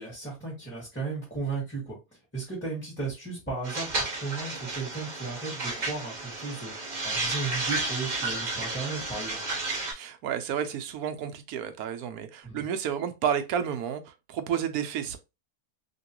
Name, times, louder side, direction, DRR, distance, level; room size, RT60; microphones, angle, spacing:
voice 1, 0.0-2.0 2.3-9.4 12.4-12.6, right 4 dB, 10° left, 1.4 m, -35 dB
sound 1, 3.6-9.9, right 2 dB, 35° right, 0.9 m, -32 dB
voice 2, 9.9-15.2, right 8 dB, 80° right, 1.1 m, -31 dB
3.0 x 2.9 x 2.9 m
omnidirectional pair, 1.6 m